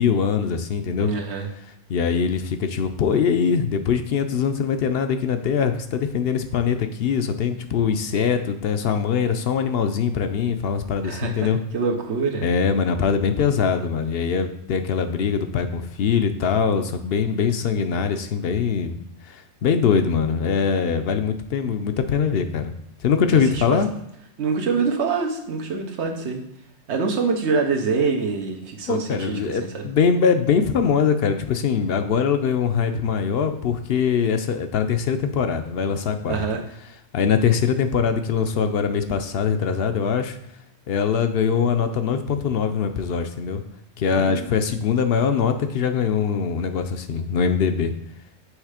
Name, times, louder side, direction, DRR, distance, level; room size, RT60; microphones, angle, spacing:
voice 1, 0.0-1.1 1.9-11.6 12.4-19.0 19.2-22.7 23.0-23.9 28.9-36.4 37.1-40.4 40.9-43.6 44.0-47.9, left 6 dB, 65° left, 8 dB, 0.7 m, -22 dB
voice 2, 1.0-1.5 11.0-12.4 23.5-23.8 24.4-26.4 26.9-29.9 36.3-36.6 44.1-44.5, right 4 dB, 85° right, 3 dB, 1.2 m, -25 dB
6.4 x 3.2 x 4.9 m, 0.78 s
omnidirectional pair, 1.1 m